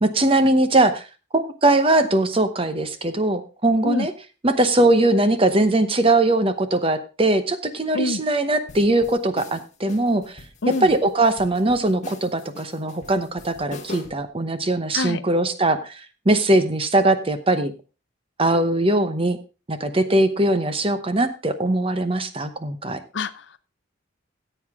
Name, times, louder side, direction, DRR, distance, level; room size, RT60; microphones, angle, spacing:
voice 1, 0.0-1.1 1.3-4.1 4.4-10.4 10.8-17.7 18.4-19.4 19.7-23.0, right 2 dB, 25° right, 11 dB, 0.9 m, -20 dB
sound 1, 8.7-14.3, left 3 dB, 35° left, 1.5 m, -42 dB
voice 2, 23.1-23.4, left 3 dB, 60° left, 14 dB, 0.6 m, -26 dB
14.5 x 7.9 x 3.6 m, 0.31 s
head